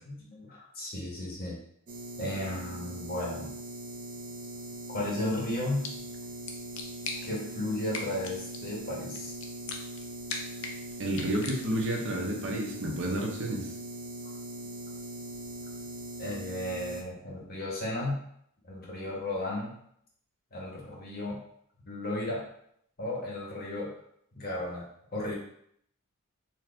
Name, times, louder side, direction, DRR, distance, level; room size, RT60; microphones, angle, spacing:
voice 1, 0.0-1.6 2.2-3.5 4.9-5.8 7.2-9.3 14.2-14.3 16.2-18.2 18.6-19.7 20.5-21.4 21.8-22.4 23.0-23.9 24.3-24.9 25.1-25.3, left 1 dB, 45° left, -4 dB, 1.2 m, -34 dB
sound 1, 1.9-17.0, right 1 dB, 40° right, 0.5 m, -41 dB
sound 2, 5.5-12.0, left 4 dB, 65° left, 0.6 m, -42 dB
voice 2, 11.0-13.7, right 1 dB, 65° right, -1 dB, 0.9 m, -30 dB
4.3 x 2.5 x 3.3 m, 0.70 s
head